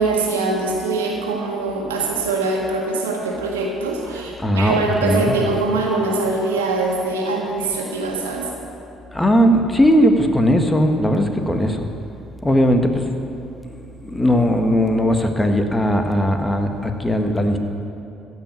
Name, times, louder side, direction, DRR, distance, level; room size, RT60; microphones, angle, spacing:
voice 1, 0.0-8.5, right 3 dB, 90° right, 0 dB, 1.7 m, -22 dB
voice 2, 4.1-4.7 5.0-5.4 9.1-11.9 12.4-13.1 13.7-17.6, equal, 15° left, 5 dB, 1.6 m, -18 dB
15.5 x 6.0 x 9.1 m, 2.7 s
hypercardioid pair, 55°, 0 cm